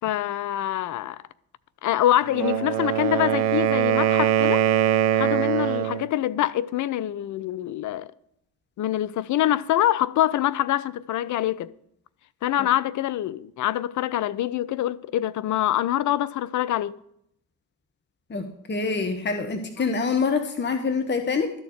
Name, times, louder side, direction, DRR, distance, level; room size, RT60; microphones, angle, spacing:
voice 1, 0.0-1.2 1.8-4.6 5.1-8.1 8.8-11.7 12.4-17.0, left 13 dB, 40° left, 0.5 m, -25 dB
Wind instrument woodwind instrument, 2.3-6.1, right 11 dB, 60° right, 1.0 m, -22 dB
voice 2, 18.3-21.5, left 4 dB, 25° left, 1.1 m, -26 dB
12.5 x 4.4 x 7.9 m
hypercardioid pair, 50°, 46 cm